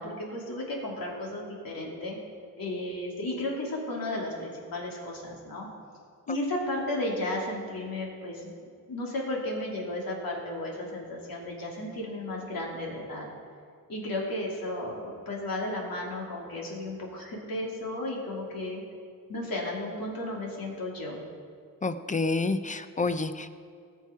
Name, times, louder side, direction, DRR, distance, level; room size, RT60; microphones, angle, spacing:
voice 1, 0.0-2.2 2.6-5.7 6.3-8.5 8.9-13.3 13.9-18.8 19.3-21.2, left 1 dB, 80° left, -2 dB, 3.1 m, -34 dB
voice 2, 21.8-23.6, left 3 dB, 20° left, 10 dB, 0.6 m, -29 dB
19.5 x 7.4 x 4.7 m, 2.3 s
wide cardioid pair, 110°, 34 cm